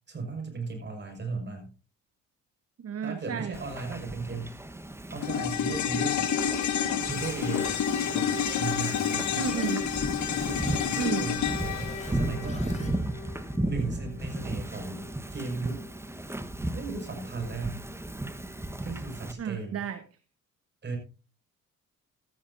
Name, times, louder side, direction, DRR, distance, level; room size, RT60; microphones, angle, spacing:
voice 1, 0.1-1.7 3.0-4.6 5.1-6.3 7.0-7.8 8.1-9.5 10.3-15.8 16.6-17.8 18.8-19.8 20.8-21.0, right 3 dB, 35° right, 4 dB, 5.9 m, -36 dB
voice 2, 2.8-3.5 9.4-9.8 10.9-11.3 19.4-20.0, right 7 dB, 55° right, 10 dB, 1.3 m, -32 dB
Wind / Ocean, 3.5-19.3, right 1 dB, 10° right, 1.2 m, -35 dB
sound 1, 5.2-13.7 14.0-14.1, left 8 dB, 70° left, 1.7 m, -29 dB
sound 2, 6.4-6.7 7.4-7.7 8.4-8.6 9.4-9.7 10.4-10.9 11.4-12.9, left 3 dB, 25° left, 3.8 m, -45 dB
14.0 x 13.5 x 2.7 m, 0.33 s
cardioid pair, 90°, 30 cm